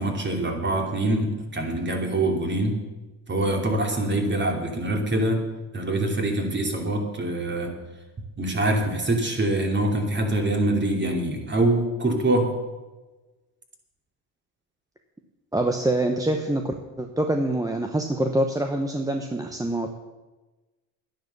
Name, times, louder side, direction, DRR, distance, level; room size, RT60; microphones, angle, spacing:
voice 1, 0.0-2.8 3.3-5.4 5.7-7.7 8.4-12.5, right 1 dB, 25° right, 3 dB, 2.8 m, -24 dB
voice 2, 15.5-19.9, right 1 dB, 10° right, 4 dB, 0.9 m, -25 dB
11.0 x 10.5 x 6.8 m, 1.2 s
supercardioid pair, 100°, 43 cm